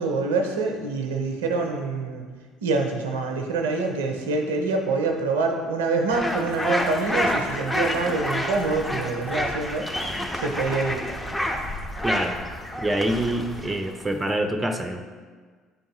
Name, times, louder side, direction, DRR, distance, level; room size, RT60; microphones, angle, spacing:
voice 1, 0.0-2.3 2.6-10.1 10.4-11.0, right 3 dB, 85° right, 3 dB, 0.5 m, -26 dB
sound 1, 6.1-14.2, equal, 10° left, 0.9 m, -29 dB
sound 2, 6.2-14.4, left 1 dB, 50° left, 1.8 m, -44 dB
voice 2, 12.0-12.3 12.8-15.1, right 1 dB, 15° right, 6 dB, 0.6 m, -26 dB
9.3 x 3.5 x 3.0 m, 1.5 s
hypercardioid pair, 60°, 0 cm